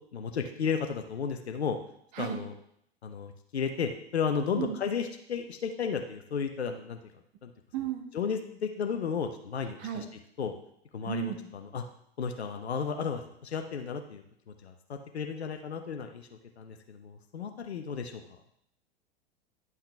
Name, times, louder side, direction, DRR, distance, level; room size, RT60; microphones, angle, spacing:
voice 1, 0.1-1.8 2.2-2.5 3.0-7.0 7.4-7.5 8.1-10.1 10.4-10.5 10.9-11.8 12.2-16.3 16.6-18.2, left 6 dB, 80° left, 5 dB, 0.8 m, -33 dB
voice 2, 7.7-8.0 9.8-10.0 11.0-11.4, right 11 dB, 45° right, 4 dB, 1.4 m, -33 dB
10.5 x 5.6 x 3.3 m, 0.72 s
figure-of-eight pair, 90°, 32 cm